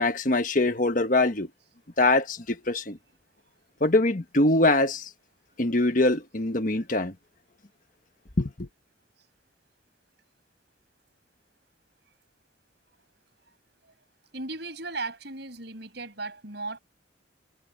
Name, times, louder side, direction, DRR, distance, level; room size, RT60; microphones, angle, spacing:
voice 1, 0.0-1.5 2.0-3.0 3.8-5.1 5.6-7.1 8.4-8.7, left 2 dB, 45° left, 1.4 m, -23 dB
voice 2, 14.3-16.8, right 3 dB, 60° right, 6.7 m, -36 dB
head